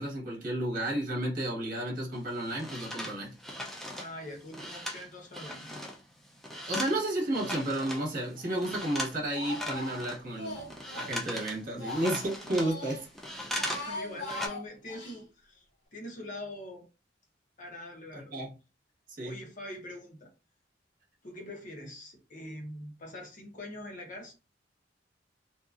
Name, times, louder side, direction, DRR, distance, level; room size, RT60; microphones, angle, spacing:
voice 1, 0.0-3.3 6.7-10.7 10.9-13.1 18.1-18.5 19.1-19.3, right 1 dB, 50° right, 1.2 m, -32 dB
sound 1, 2.1-8.1 8.5-9.2 9.4-13.9 14.2-14.5, left 1 dB, ahead, 0.4 m, -38 dB
voice 2, 3.9-5.9 13.8-15.7 15.9-16.8 17.6-18.4 19.2-20.3 21.2-24.3, left 1 dB, 45° left, 0.8 m, -43 dB
Speech, 7.3-8.0 8.3-11.2 11.5-13.0 13.4-15.2, left 1 dB, 75° left, 1.0 m, -42 dB
2.7 x 2.4 x 2.4 m
head